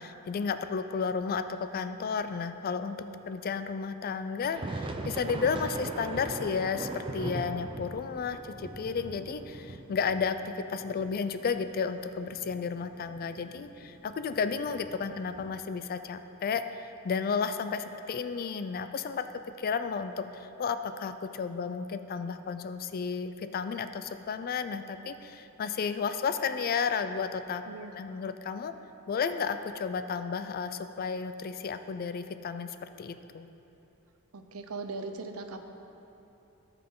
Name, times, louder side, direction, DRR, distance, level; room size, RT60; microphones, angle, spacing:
voice 1, 0.0-27.6 27.9-28.7 29.1-33.5, left 5 dB, 45° left, 10 dB, 0.3 m, -33 dB
sound 1, 4.4-15.6, right 2 dB, 25° right, 0.4 m, -41 dB
voice 2, 27.7-28.0 34.3-35.6, right 3 dB, 75° right, 6 dB, 0.6 m, -39 dB
13.0 x 5.8 x 3.8 m, 3.0 s
head